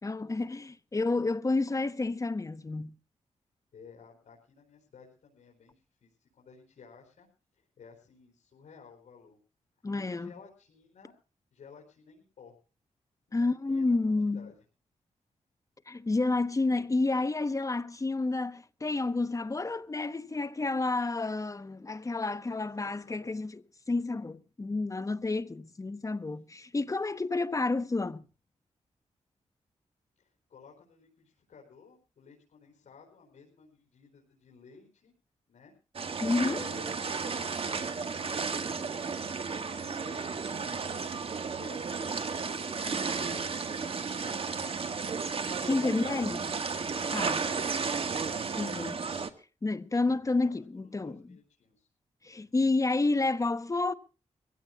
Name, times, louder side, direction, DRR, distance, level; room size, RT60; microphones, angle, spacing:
voice 1, 0.0-2.9 9.8-10.3 13.3-14.5 15.9-23.5 23.9-28.2 36.2-36.6 45.6-46.4 47.1-47.4 48.5-49.0 49.6-51.2 52.2-53.9, left 3 dB, 25° left, 1.1 m, -30 dB
voice 2, 3.7-7.3 7.6-9.4 9.9-11.1 11.5-12.6 13.3-13.4 13.7-14.0 14.3-14.6 22.8-23.4 30.2-35.1 35.5-35.7 36.4-41.1 41.5-44.5 46.9-47.2 50.4-51.9, left 5 dB, 75° left, 4.5 m, -55 dB
sound 1, 35.9-49.3, right 5 dB, 50° right, 1.8 m, -33 dB
24.0 x 16.0 x 2.4 m
cardioid pair, 85°, 12 cm